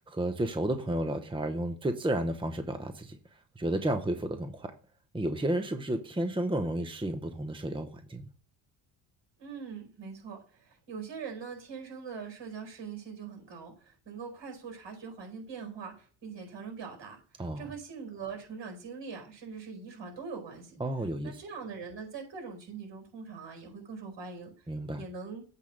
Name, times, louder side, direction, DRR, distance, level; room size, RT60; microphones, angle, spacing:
voice 1, 0.0-3.2 3.6-4.7 5.1-8.2 17.4-17.7 20.8-21.3 24.7-25.0, right 1 dB, 10° right, 0.9 m, -32 dB
voice 2, 9.4-20.8 21.2-24.7 25.0-25.4, right 5 dB, 65° right, 4.6 m, -42 dB
8.3 x 3.6 x 6.4 m
supercardioid pair, 70°, 47 cm